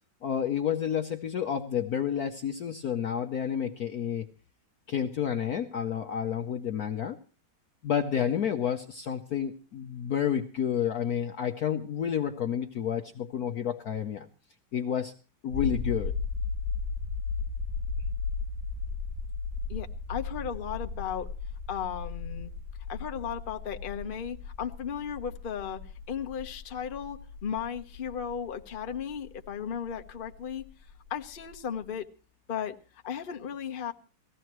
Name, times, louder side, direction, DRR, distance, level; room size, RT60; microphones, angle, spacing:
voice 1, 0.2-4.3 4.9-7.2 7.8-14.3 14.7-15.1 15.4-16.1, left 8 dB, 60° left, 5 dB, 1.1 m, -30 dB
sound 1, 15.5-31.5 31.8-31.9, left 4 dB, 85° right, 7.4 m, -36 dB
voice 2, 19.7-21.3 21.7-22.5 22.9-25.8 26.1-30.6 31.1-32.1 32.5-32.8 33.0-33.9, left 8 dB, 35° left, 5 dB, 0.9 m, -35 dB
19.0 x 15.5 x 3.1 m, 0.37 s
omnidirectional pair, 2.2 m